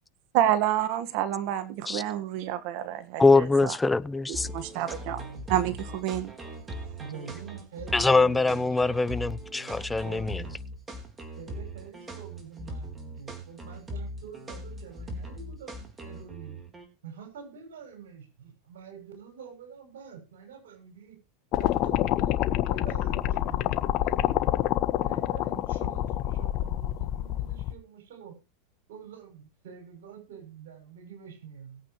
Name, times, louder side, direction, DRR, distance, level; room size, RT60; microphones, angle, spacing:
voice 1, 0.3-3.8 4.3-5.2 5.5-6.3, right 12 dB, 60° right, 1.5 m, -28 dB
voice 2, 3.2-4.5 7.9-10.4, left 3 dB, 10° left, 0.7 m, -23 dB
sound 1, 4.3-16.9, equal, 20° right, 3.9 m, -40 dB
voice 3, 5.0-5.8 7.0-8.8 10.0-10.6 11.4-15.7 16.0-16.6 17.0-21.2 21.6-24.3 25.0-28.3 28.9-31.8, right 7 dB, 75° right, 6.8 m, -46 dB
sound 2, 21.5-27.7, left 13 dB, 50° left, 1.4 m, -27 dB
21.5 x 8.6 x 3.1 m
hypercardioid pair, 100°, 0 cm